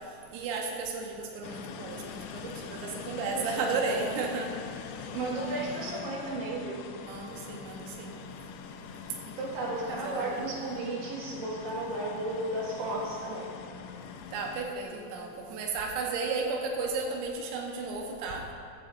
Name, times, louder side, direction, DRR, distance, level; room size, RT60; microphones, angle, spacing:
voice 1, 0.3-4.5 7.0-8.1 9.9-10.5 14.3-18.4, right 4 dB, 85° right, 1 dB, 3.8 m, -34 dB
sound 1, 1.4-14.6, left 7 dB, 85° left, 3.3 m, -43 dB
voice 2, 3.3-4.1 5.1-6.8 9.4-13.5, right 2 dB, 60° right, -4 dB, 3.4 m, -34 dB
15.0 x 12.0 x 2.6 m, 2.6 s
omnidirectional pair, 6.0 m